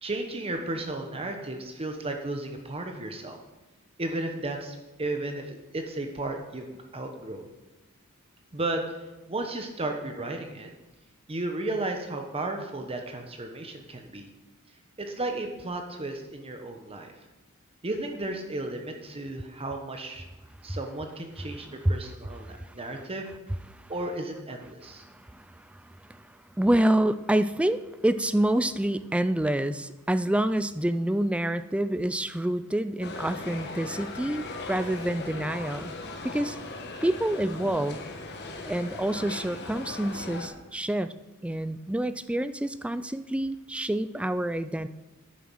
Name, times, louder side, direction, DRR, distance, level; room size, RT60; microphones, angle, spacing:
voice 1, 0.0-3.4 4.0-7.5 8.5-10.7 11.3-14.3 15.0-17.2 17.8-20.2 20.6-23.3 23.9-25.0, right 2 dB, 25° right, 4 dB, 1.0 m, -34 dB
voice 2, 25.0-26.3 26.6-35.9 36.2-36.6 37.0-38.0 38.7-41.1 41.4-44.9, right 1 dB, 5° right, 12 dB, 0.3 m, -27 dB
sound 1, 33.0-40.5, left 3 dB, 50° left, 1.2 m, -38 dB
9.6 x 7.1 x 6.2 m, 1.0 s
head